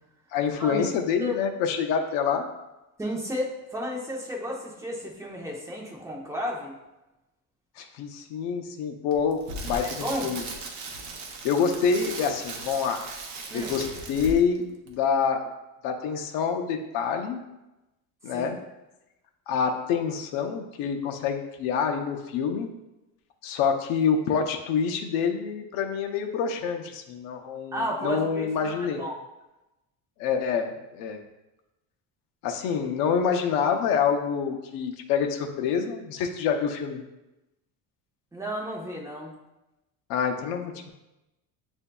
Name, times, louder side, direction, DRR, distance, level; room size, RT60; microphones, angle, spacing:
voice 1, 0.3-2.5 7.8-10.5 11.4-13.0 13.5-15.5 15.8-17.4 18.2-18.6 19.5-22.7 23.4-29.0 30.2-31.2 32.4-37.0 40.1-40.9, left 6 dB, 70° left, 4 dB, 0.6 m, -27 dB
voice 2, 3.0-6.7 9.8-10.3 13.5-13.7 18.3-18.5 27.7-29.2 38.3-39.3, equal, 10° right, -2 dB, 0.7 m, -33 dB
Crackle, 9.1-14.6 14.9-15.0, right 3 dB, 50° right, 0.8 m, -37 dB
7.8 x 2.6 x 2.2 m, 0.98 s
cardioid pair, 150°, 38 cm